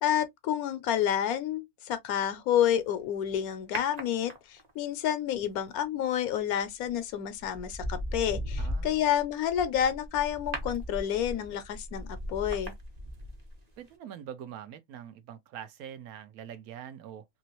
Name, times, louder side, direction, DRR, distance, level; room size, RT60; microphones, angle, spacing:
voice 1, 0.0-12.7, left 10 dB, 75° left, 1.0 m, -29 dB
sound 1, 3.7-4.8 6.6-6.9 7.4-13.6 13.9-14.0, equal, 35° right, 0.8 m, -37 dB
voice 2, 8.6-9.0 13.8-17.3, right 9 dB, 75° right, 1.1 m, -44 dB
3.0 x 2.9 x 2.9 m
omnidirectional pair, 1.6 m